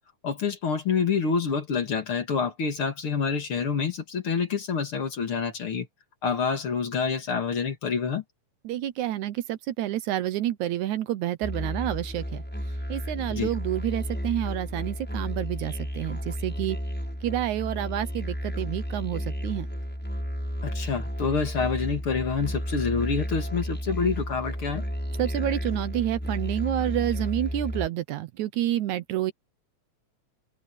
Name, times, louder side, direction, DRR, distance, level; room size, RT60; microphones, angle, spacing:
voice 1, 0.2-5.9 6.2-8.2 13.3-13.5 20.6-24.8, left 5 dB, 45° left, 2.5 m, -27 dB
voice 2, 8.7-12.4 12.9-16.8 17.2-19.7 25.2-29.3, right 13 dB, 75° right, 2.1 m, -29 dB
Musical instrument, 11.4-27.9, equal, 5° left, 7.2 m, -32 dB
open air
omnidirectional pair, 3.6 m